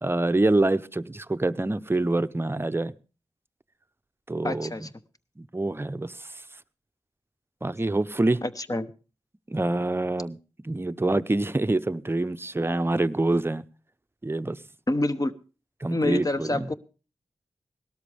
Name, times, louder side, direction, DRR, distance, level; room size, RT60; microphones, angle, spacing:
voice 1, 0.0-2.9 4.3-4.9 5.4-6.3 7.6-8.4 9.5-10.4 10.6-13.6 14.2-14.6 15.8-16.7, right 2 dB, 20° right, 0.7 m, -26 dB
voice 2, 4.4-4.9 8.4-8.9 14.9-15.3 15.9-16.7, left 2 dB, 30° left, 1.0 m, -27 dB
18.0 x 13.0 x 3.4 m
wide cardioid pair, 65°, 11 cm